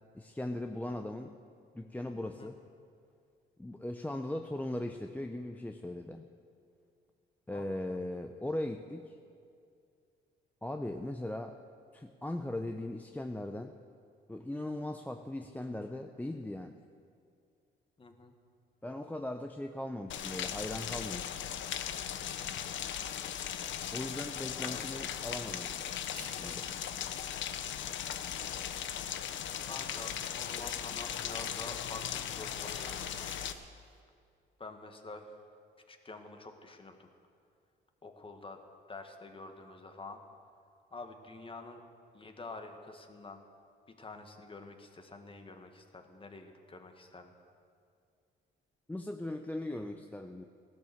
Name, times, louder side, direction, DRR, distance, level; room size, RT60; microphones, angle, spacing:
voice 1, 0.1-1.3 1.7-2.6 3.6-6.3 7.5-9.2 10.6-11.6 11.9-13.8 14.3-16.8 18.8-21.3 23.9-25.8 26.3-26.7 48.9-50.4, left 1 dB, 10° left, 5 dB, 0.6 m, -39 dB
voice 2, 2.2-2.5 7.5-8.0 18.0-18.3 24.7-24.9 29.7-33.0 34.6-35.4 35.9-37.1 38.0-38.6 38.9-40.2 40.9-41.8 42.1-43.4 43.9-47.3, left 3 dB, 25° left, 5 dB, 1.7 m, -47 dB
Rain, 20.1-33.5, left 9 dB, 70° left, 0.8 m, -38 dB
sound 1, 26.2-26.5 26.9-33.7, right 5 dB, 45° right, 1.4 m, -58 dB
16.0 x 12.5 x 7.1 m, 2.3 s
cardioid pair, 90°, 20 cm